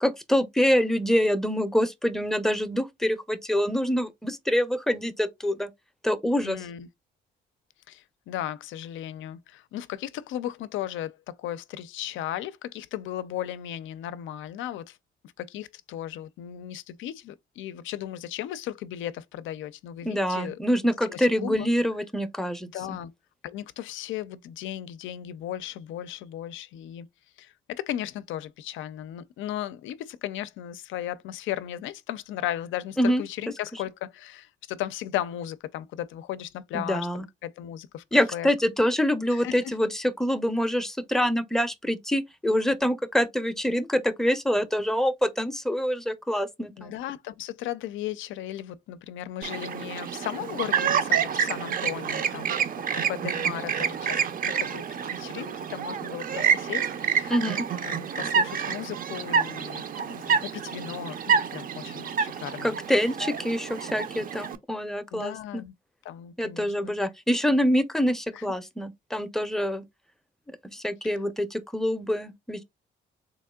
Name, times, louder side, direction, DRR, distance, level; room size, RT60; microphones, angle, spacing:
voice 1, 0.0-5.7 6.0-6.6 20.0-22.7 33.0-33.2 36.7-37.2 38.1-46.9 57.3-57.6 62.6-65.6 66.4-69.8 70.5-72.6, equal, ahead, 0.5 m, -25 dB
voice 2, 6.4-6.9 7.9-15.0 15.4-20.6 21.1-21.7 22.7-23.1 23.4-27.1 27.4-38.0 38.3-38.5 39.3-39.8 46.8-57.4 57.7-62.8 65.1-65.7 66.0-66.9 68.3-68.4 71.0-71.2, left 12 dB, 80° left, 0.4 m, -36 dB
Chirp tweet, 49.4-64.6, right 7 dB, 45° right, 0.5 m, -28 dB
3.5 x 3.0 x 2.2 m
cardioid pair, 90°, 20 cm